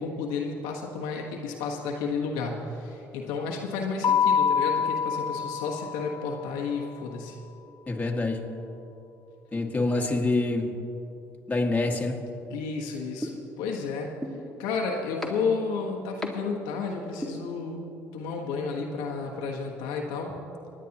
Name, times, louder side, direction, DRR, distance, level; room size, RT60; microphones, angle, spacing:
voice 1, 0.0-7.4 12.5-14.1 14.6-17.8 18.1-20.3, left 4 dB, 85° left, -1 dB, 1.3 m, -32 dB
Keyboard (musical), 4.0-6.6, left 7 dB, 50° left, 0.7 m, -26 dB
voice 2, 7.9-8.5 9.5-10.8 11.5-12.2, left 2 dB, 20° left, 0 dB, 1.9 m, -26 dB
sound 1, 13.2-13.3 14.2-14.3 15.2-15.3 16.2-16.3 17.2-17.3, left 1 dB, 5° left, 1.9 m, -31 dB
26.5 x 9.9 x 3.0 m, 2.9 s
hypercardioid pair, 65°, 7 cm